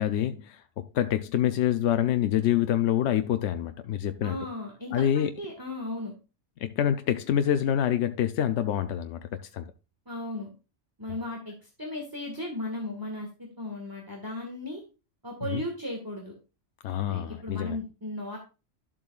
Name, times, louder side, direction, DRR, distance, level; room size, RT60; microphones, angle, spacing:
voice 1, 0.0-4.4 4.9-5.3 6.6-9.7 11.1-11.2 15.5-15.6 16.8-17.8, left 10 dB, 80° left, 0.9 m, -26 dB
voice 2, 4.2-6.1 10.1-10.5 11.0-14.8 15.2-16.3 17.1-18.4, left 1 dB, 20° right, 1.7 m, -36 dB
12.0 x 7.4 x 2.4 m
omnidirectional pair, 1.2 m